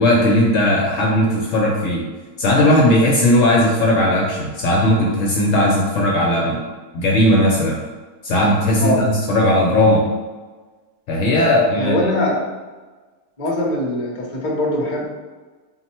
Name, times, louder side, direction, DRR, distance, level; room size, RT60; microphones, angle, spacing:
voice 1, 0.0-2.0 2.4-6.6 6.9-7.8 8.2-10.0 11.1-12.0, left 1 dB, 65° left, -2 dB, 0.9 m, -17 dB
voice 2, 11.8-12.5 13.4-15.1, left 1 dB, 40° left, -2 dB, 0.7 m, -21 dB
4.2 x 2.1 x 4.2 m, 1.3 s
omnidirectional pair, 1.7 m